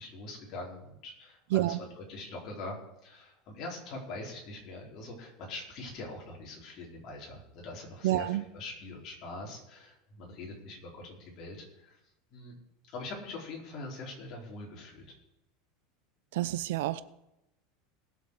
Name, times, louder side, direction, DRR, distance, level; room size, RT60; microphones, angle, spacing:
voice 1, 0.0-2.8 3.0-12.0 12.3-12.5 12.9-15.0, left 2 dB, 40° left, 4.8 m, -43 dB
voice 2, 8.0-8.4 16.4-17.0, right 15 dB, 75° right, 0.7 m, -28 dB
20.0 x 7.5 x 5.0 m
supercardioid pair, 145°, 0 cm